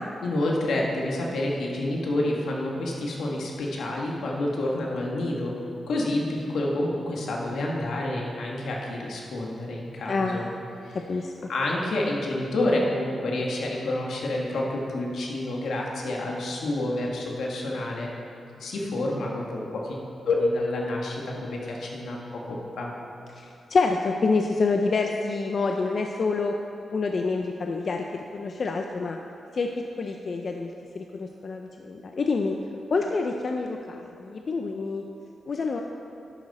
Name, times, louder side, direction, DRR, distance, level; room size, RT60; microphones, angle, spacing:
voice 1, 0.2-5.5 5.9-10.5 10.8-11.0 11.5-18.1 18.6-20.0 20.3-22.9, left 1 dB, 75° left, -2 dB, 1.8 m, -28 dB
voice 2, 10.1-10.5 10.9-11.5 23.3-26.5 26.9-29.2 29.5-32.6 32.9-35.0 35.5-35.8, left 4 dB, 45° left, 3 dB, 0.5 m, -27 dB
11.0 x 10.5 x 4.3 m, 2.7 s
wide cardioid pair, 130°, 0 cm